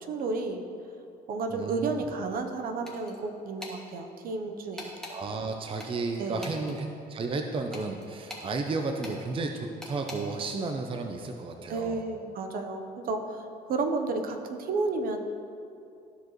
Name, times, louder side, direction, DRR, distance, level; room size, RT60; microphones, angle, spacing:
voice 1, 0.1-0.6 1.3-4.9 6.2-6.5 11.7-13.4 13.7-15.2, right 3 dB, 60° right, 5 dB, 0.8 m, -31 dB
voice 2, 1.5-2.1 5.1-12.0, right 3 dB, 30° right, 4 dB, 0.6 m, -33 dB
sound 1, 2.9-3.2 3.6-3.8 4.8-5.2 5.8-6.8 7.7-8.5 9.0-9.2 9.8-10.2, left 1 dB, 5° left, 1.5 m, -42 dB
14.0 x 4.8 x 3.1 m, 2.6 s
cardioid pair, 110°, 17 cm